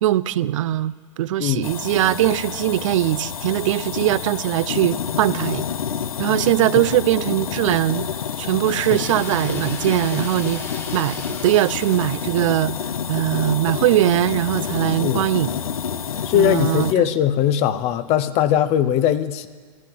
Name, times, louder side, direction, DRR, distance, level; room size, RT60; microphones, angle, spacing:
voice 1, 0.0-5.6 6.2-8.0 8.4-10.6 10.9-12.7 13.1-15.5 16.3-17.1, right 13 dB, 65° right, 18 dB, 0.5 m, -21 dB
voice 2, 1.4-1.7 8.9-9.0 15.0-15.3 16.2-19.5, left 10 dB, 35° left, 13 dB, 0.7 m, -20 dB
sound 1, 1.6-16.9, left 7 dB, 90° left, 0.8 m, -28 dB
sound 2, 8.6-12.7, left 2 dB, 15° left, 1.7 m, -39 dB
13.0 x 11.0 x 7.8 m, 1.5 s
hypercardioid pair, 120°, 18 cm